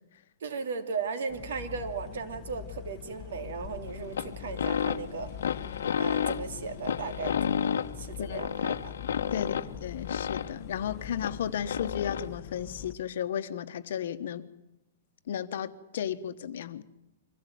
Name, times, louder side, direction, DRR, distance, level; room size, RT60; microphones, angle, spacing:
voice 1, 0.4-5.3 5.7-8.9 9.3-9.7, right 5 dB, 60° right, 2.9 m, -37 dB
sound 1, 1.3-13.0, left 11 dB, 15° left, 1.2 m, -44 dB
sound 2, 3.9-12.4, left 8 dB, 75° left, 1.1 m, -32 dB
voice 2, 9.3-14.5 15.3-16.8, left 9 dB, 50° left, 1.2 m, -34 dB
24.5 x 17.0 x 9.3 m
hypercardioid pair, 180°, 0 cm